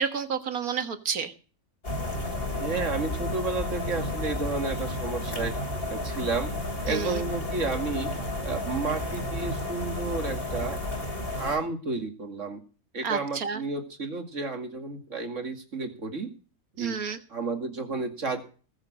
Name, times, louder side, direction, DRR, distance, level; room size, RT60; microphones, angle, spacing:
voice 1, 0.0-1.3 6.9-7.2 13.0-13.6 16.8-17.2, right 6 dB, 80° right, 9 dB, 1.9 m, -30 dB
sound 1, 1.8-11.6, left 1 dB, 40° left, 3.8 m, -32 dB
voice 2, 2.6-5.5 5.9-6.5 6.8-8.1 8.4-10.8 11.4-12.6 12.9-16.3 16.8-17.0 17.3-18.4, right 3 dB, 60° right, 6 dB, 2.5 m, -31 dB
19.5 x 7.3 x 6.2 m, 0.37 s
omnidirectional pair, 1.5 m